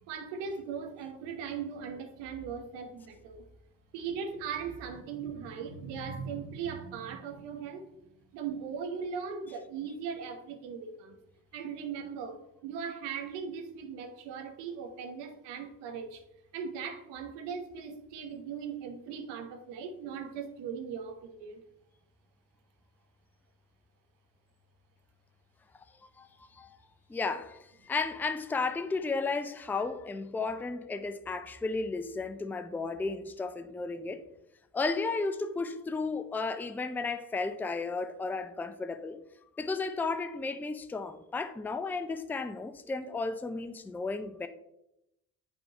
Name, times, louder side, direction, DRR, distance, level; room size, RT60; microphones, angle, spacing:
voice 1, 0.1-3.4 3.9-7.9 8.3-11.2 11.5-16.2 16.5-21.6, right 6 dB, 70° right, 1.0 m, -39 dB
voice 2, 26.2-26.8 27.1-34.2 34.7-39.2 39.6-44.5, left 3 dB, 5° left, 0.4 m, -34 dB
8.5 x 4.5 x 2.9 m
hypercardioid pair, 50°, 44 cm